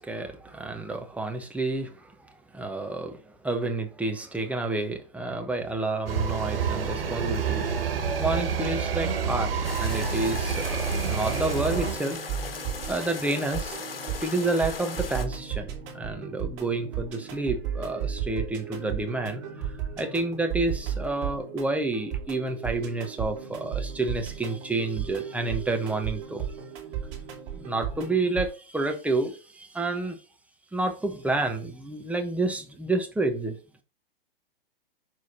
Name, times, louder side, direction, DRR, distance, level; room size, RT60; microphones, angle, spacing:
voice 1, 0.0-12.2 12.9-13.8 14.2-26.5 27.5-30.2 30.7-33.6, right 2 dB, 5° right, 1.1 m, -30 dB
sound 1, 6.1-11.9, right 6 dB, 75° right, 1.8 m, -28 dB
sound 2, 9.6-15.3, left 5 dB, 75° left, 1.6 m, -38 dB
sound 3, 11.5-28.5, right 8 dB, 40° right, 3.0 m, -35 dB
6.4 x 4.7 x 5.5 m
hypercardioid pair, 115°, 29 cm